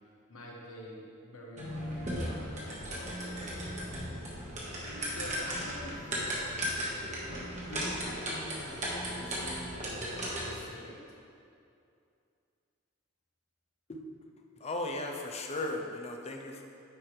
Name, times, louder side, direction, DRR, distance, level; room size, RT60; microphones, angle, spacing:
voice 1, 0.3-4.0 5.0-6.7 7.2-11.2, equal, 80° left, -2 dB, 1.2 m, -47 dB
sound 1, 1.6-10.6, equal, 35° right, 1.4 m, -36 dB
voice 2, 14.6-16.6, left 2 dB, 30° left, 2 dB, 0.6 m, -36 dB
9.4 x 4.7 x 3.2 m, 2.5 s
head